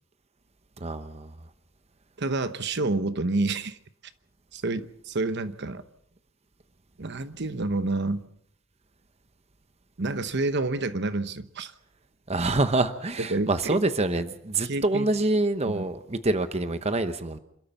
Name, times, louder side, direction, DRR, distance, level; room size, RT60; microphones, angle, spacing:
voice 1, 0.8-1.3 12.3-17.4, right 2 dB, 30° right, 10 dB, 0.9 m, -26 dB
voice 2, 2.2-3.8 4.5-5.8 7.0-8.2 10.0-11.7 13.3-13.8 14.6-15.1 15.6-15.8, right 2 dB, 60° right, 12 dB, 1.0 m, -28 dB
27.5 x 13.0 x 7.1 m, 0.73 s
head